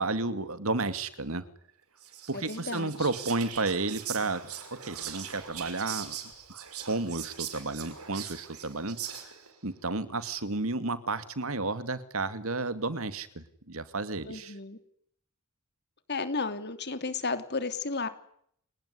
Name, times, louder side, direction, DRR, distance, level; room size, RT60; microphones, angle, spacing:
voice 1, 0.0-1.4 2.3-4.4 4.7-6.2 6.8-9.0 9.6-14.5, right 3 dB, 65° right, 12 dB, 2.4 m, -32 dB
Whispering, 2.0-9.5, right 9 dB, 85° right, 5.8 m, -41 dB
voice 2, 2.3-2.9 14.2-14.8 16.1-18.1, left 4 dB, 50° left, 10 dB, 3.3 m, -33 dB
29.5 x 19.5 x 9.9 m, 0.69 s
head